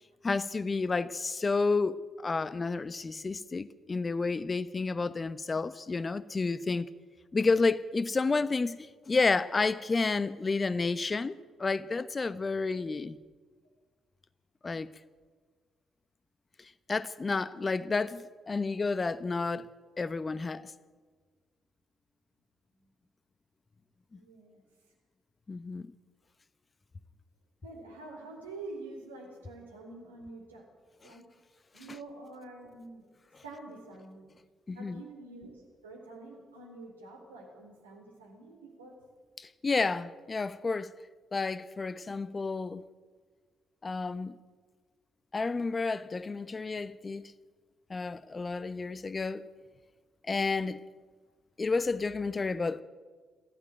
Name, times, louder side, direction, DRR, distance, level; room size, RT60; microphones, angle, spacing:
voice 1, 0.2-6.9 7.3-13.2 14.6-14.9 16.6-19.7 20.0-20.7 24.1-24.2 25.5-25.9 31.0-31.2 33.3-33.4 34.7-35.0 39.4-40.9 41.3-42.8 43.8-44.4 45.3-47.3 47.9-49.4 50.3-50.8 51.6-52.8, left 4 dB, 35° left, 1.0 m, -31 dB
voice 2, 24.1-24.6 27.6-30.7 31.0-31.2 31.7-33.0 33.4-34.3 34.7-38.9, right 2 dB, 85° right, 4.0 m, -47 dB
23.0 x 15.5 x 9.1 m
figure-of-eight pair, 40°, 0 cm